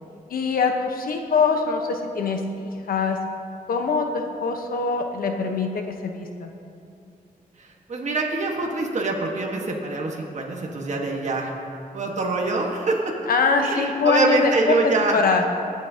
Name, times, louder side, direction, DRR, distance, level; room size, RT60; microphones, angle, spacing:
voice 1, 0.3-3.2 3.7-6.5 13.3-14.8 15.1-15.5, left 4 dB, 85° left, 4 dB, 1.0 m, -23 dB
voice 2, 7.6-11.5 11.9-13.1 13.6-15.2, right 3 dB, 55° right, -1 dB, 1.4 m, -25 dB
23.5 x 8.6 x 2.8 m, 2.5 s
wide cardioid pair, 105°, 15 cm